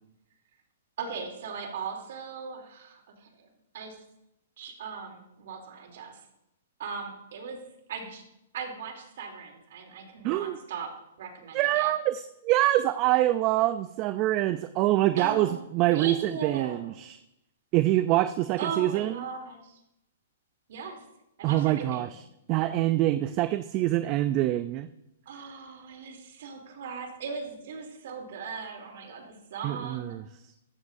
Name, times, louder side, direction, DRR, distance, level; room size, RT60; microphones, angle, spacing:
voice 1, 1.0-3.3 3.7-4.0 4.6-6.2 6.8-7.6 7.9-8.2 8.5-10.9 11.2-11.9 15.2-15.6 15.9-16.9 18.6-19.8 20.7-21.0 21.4-22.1 25.3-30.2, right 5 dB, 65° right, 2 dB, 3.0 m, -38 dB
voice 2, 10.2-10.6 11.5-17.2 17.7-19.2 21.4-22.2 22.5-24.9 29.6-30.2, right 15 dB, 35° right, 12 dB, 0.4 m, -25 dB
14.5 x 12.5 x 2.7 m, 0.83 s
hypercardioid pair, 140°, 0 cm